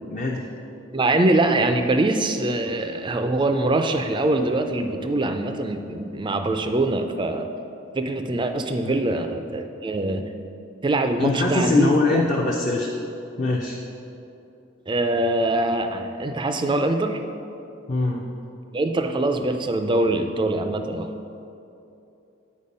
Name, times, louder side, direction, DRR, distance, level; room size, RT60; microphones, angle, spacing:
voice 1, 0.1-0.5 8.8-9.0 11.2-12.9 13.4-13.8 17.9-18.2, left 2 dB, 35° left, -2 dB, 0.5 m, -22 dB
voice 2, 0.9-7.5 7.9-10.3 10.8-12.2 14.9-17.2 18.7-21.1, right 2 dB, 25° right, 7 dB, 0.4 m, -23 dB
8.6 x 4.5 x 5.3 m, 2.8 s
head